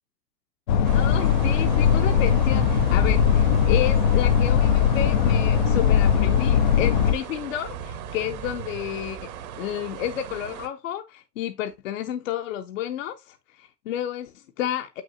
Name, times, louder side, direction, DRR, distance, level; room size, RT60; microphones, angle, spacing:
sound 1, 0.7-7.1, left 7 dB, 30° left, 0.4 m, -20 dB
sound 2, 0.8-10.7, right 7 dB, 60° right, 1.3 m, -36 dB
voice 1, 0.9-9.3 9.6-15.0, left 11 dB, 50° left, 0.8 m, -31 dB
7.8 x 6.1 x 2.6 m
hypercardioid pair, 110°, 49 cm